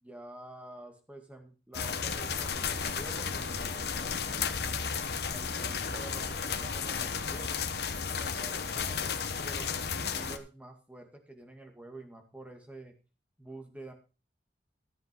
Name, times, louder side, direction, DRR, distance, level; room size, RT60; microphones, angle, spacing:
voice 1, 0.0-4.7 5.3-7.6 8.1-9.7 10.1-12.9 13.4-13.9, right 2 dB, 5° right, 4 dB, 2.1 m, -48 dB
sound 1, 1.7-10.4, left 6 dB, 60° left, 1.2 m, -33 dB
14.0 x 7.7 x 5.3 m, 0.33 s
head